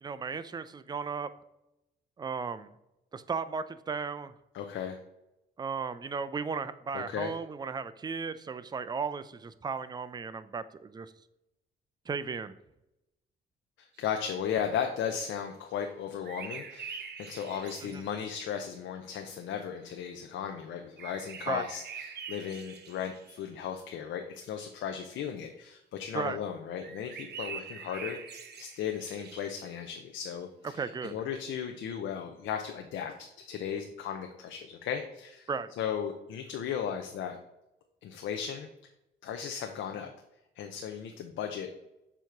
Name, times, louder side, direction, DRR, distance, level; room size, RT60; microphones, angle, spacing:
voice 1, 0.0-1.3 2.2-2.7 3.1-4.3 5.6-11.1 12.1-12.5 17.8-18.0 21.5-21.6 26.1-26.4 30.7-31.2 35.5-35.7, right 5 dB, 20° right, 13 dB, 0.4 m, -35 dB
voice 2, 4.5-5.0 6.9-7.3 13.8-35.5 35.8-37.4 38.0-38.7 39.2-40.1 40.6-41.8, left 8 dB, 80° left, 4 dB, 0.6 m, -36 dB
sound 1, 14.0-14.1 16.2-18.3 21.0-23.4 26.8-29.7, right 6 dB, 55° right, 0.8 m, -44 dB
7.0 x 3.0 x 4.6 m, 0.90 s
cardioid pair, 90°, 20 cm